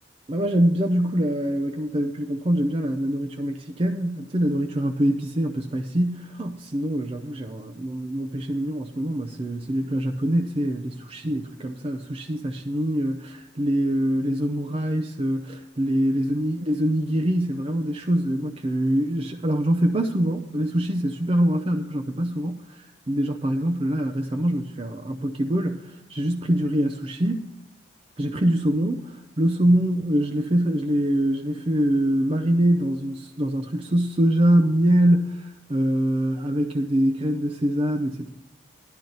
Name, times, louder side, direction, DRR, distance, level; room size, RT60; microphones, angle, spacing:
voice 1, 0.3-27.5 28.2-38.3, right 1 dB, 30° right, 5 dB, 0.6 m, -24 dB
14.0 x 12.0 x 4.0 m, 0.90 s
head